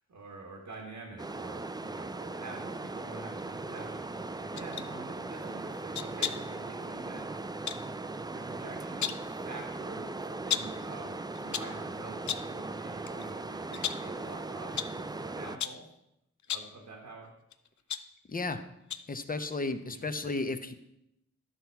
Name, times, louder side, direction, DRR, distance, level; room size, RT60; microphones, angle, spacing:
voice 1, 0.1-7.2 8.3-15.8 16.5-17.3 19.8-20.3, right 3 dB, 90° right, 0 dB, 1.5 m, -47 dB
sound 1, 1.2-15.6, right 3 dB, 15° right, 0.4 m, -39 dB
sound 2, 4.6-4.9 5.9-6.5 7.7-7.9 8.8-9.3 10.5-10.8 11.3-11.8 12.3-12.6 13.1-13.2 13.7-14.1 14.8-15.0 15.6-15.9 16.4-16.8 17.5-18.5 18.9-19.2 19.5-19.6, left 9 dB, 75° left, 0.5 m, -35 dB
voice 2, 18.3-18.6 19.1-20.7, left 3 dB, 30° left, 9 dB, 0.7 m, -33 dB
11.5 x 5.7 x 4.5 m, 0.81 s
wide cardioid pair, 90°, 29 cm